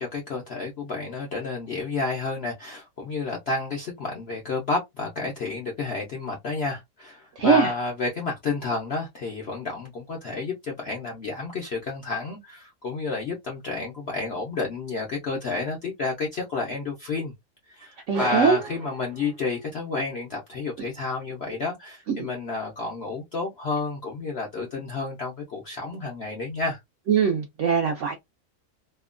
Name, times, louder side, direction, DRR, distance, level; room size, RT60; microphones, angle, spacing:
voice 1, 0.0-17.3 17.7-26.8, left 3 dB, 65° left, 0.6 m, -30 dB
voice 2, 7.4-7.7 18.1-18.6 22.1-22.3 27.1-28.1, right 6 dB, 75° right, 0.6 m, -21 dB
sound 1, 18.1-19.9, right 5 dB, 60° right, 1.0 m, -38 dB
2.8 x 2.1 x 2.4 m
omnidirectional pair, 1.8 m